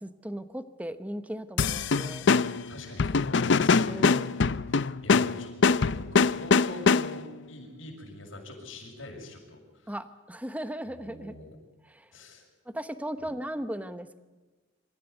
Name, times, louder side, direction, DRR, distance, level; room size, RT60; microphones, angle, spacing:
voice 1, 0.0-2.3 3.8-4.3 9.9-11.3 11.8-12.1 12.6-14.2, right 1 dB, 10° right, 11 dB, 1.0 m, -37 dB
sound 1, 1.6-7.3, left 4 dB, 65° left, 0.6 m, -24 dB
voice 2, 2.7-4.0 4.7-4.8 5.0-9.9 10.9-11.6 12.1-12.4 13.2-13.3, left 1 dB, 85° left, 1 dB, 6.8 m, -44 dB
26.5 x 14.5 x 8.2 m, 1.2 s
head